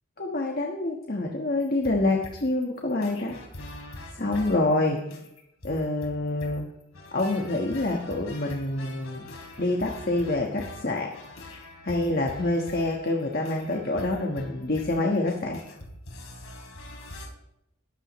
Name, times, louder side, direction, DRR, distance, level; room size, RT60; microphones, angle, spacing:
voice 1, 0.2-3.4 4.1-5.0 5.6-6.7 7.1-9.2 9.6-11.1 11.8-15.6, left 2 dB, 45° left, 1 dB, 1.4 m, -26 dB
sound 1, 1.6-17.3, left 1 dB, 90° left, 3.3 m, -44 dB
21.5 x 12.0 x 3.2 m, 0.82 s
head